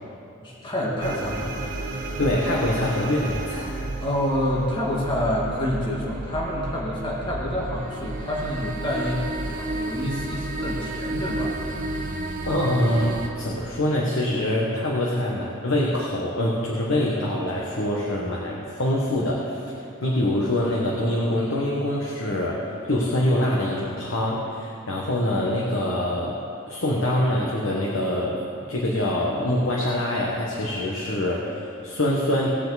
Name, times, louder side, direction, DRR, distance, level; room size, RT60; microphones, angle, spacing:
voice 1, 0.4-1.5 4.0-12.1, left 1 dB, 20° left, -5 dB, 1.8 m, -28 dB
sound 1, 1.0-13.3, right 2 dB, 40° right, 1.1 m, -32 dB
voice 2, 2.2-3.8 12.4-19.6 20.0-32.5, left 1 dB, 65° left, -3 dB, 1.3 m, -25 dB
18.5 x 7.1 x 4.1 m, 2.7 s
head